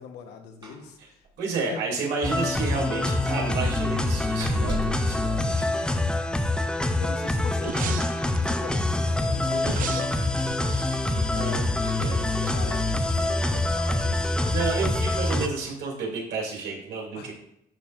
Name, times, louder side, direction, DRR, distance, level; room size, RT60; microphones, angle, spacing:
voice 1, 0.0-1.2 1.6-1.8 6.2-6.4 7.0-8.1 8.4-10.3 12.4-14.4 15.5-15.7 17.1-17.3, left 6 dB, 80° left, 5 dB, 1.1 m, -40 dB
Slam, 0.6-0.9 1.2-1.3 1.7-1.8 3.6-6.2, right 1 dB, 25° right, 1.2 m, -37 dB
voice 2, 1.4-6.1 11.3-12.4 14.5-17.3, right 4 dB, 80° right, -2 dB, 2.8 m, -31 dB
sound 1, 2.2-15.5, left 2 dB, 5° left, 0.5 m, -25 dB
sound 2, 7.6-8.8 9.6-12.1 12.4-12.5, right 9 dB, 55° right, 0.5 m, -37 dB
12.0 x 4.3 x 2.5 m, 0.75 s
cardioid pair, 110°, 17 cm